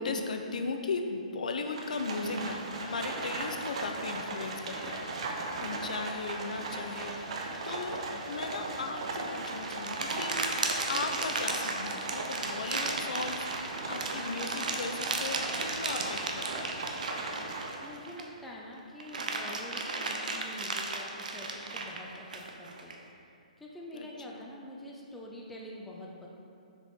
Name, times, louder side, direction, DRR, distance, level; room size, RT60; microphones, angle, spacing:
voice 1, 0.0-7.4 7.6-10.4 10.9-13.5 13.8-16.7 23.9-24.4, left 4 dB, 70° left, 5 dB, 0.6 m, -37 dB
Livestock farm animals working animals, 1.7-18.0, right 3 dB, 50° right, 0.8 m, -38 dB
sound 1, 9.1-18.4 18.8-23.0, right 3 dB, 80° right, 0.8 m, -35 dB
voice 2, 17.8-23.0 23.6-26.3, left 1 dB, ahead, -3 dB, 0.3 m, -46 dB
6.8 x 5.0 x 3.6 m, 2.5 s
hypercardioid pair, 175°, 4 cm